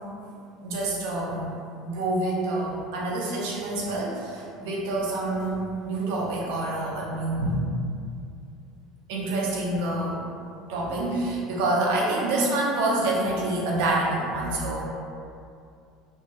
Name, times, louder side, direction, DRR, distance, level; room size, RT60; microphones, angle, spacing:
voice 1, 0.6-1.5 1.8-7.6 9.1-10.2 10.7-14.8, right 2 dB, 85° right, -3 dB, 0.6 m, -27 dB
3.7 x 2.0 x 2.6 m, 2.4 s
cardioid pair, 155°, 0 cm